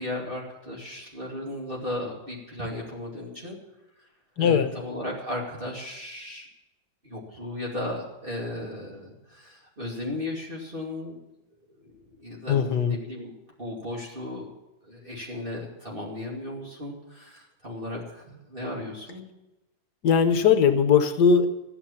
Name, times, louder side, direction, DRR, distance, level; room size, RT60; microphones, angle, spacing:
voice 1, 0.0-3.6 4.4-6.5 7.0-11.2 11.8-11.9 12.2-14.5 14.8-19.3, left 1 dB, 30° right, -3 dB, 2.7 m, -35 dB
voice 2, 4.4-4.7 12.5-13.0 20.0-21.5, left 6 dB, 65° left, 9 dB, 1.6 m, -20 dB
13.5 x 9.9 x 7.2 m, 0.94 s
omnidirectional pair, 2.0 m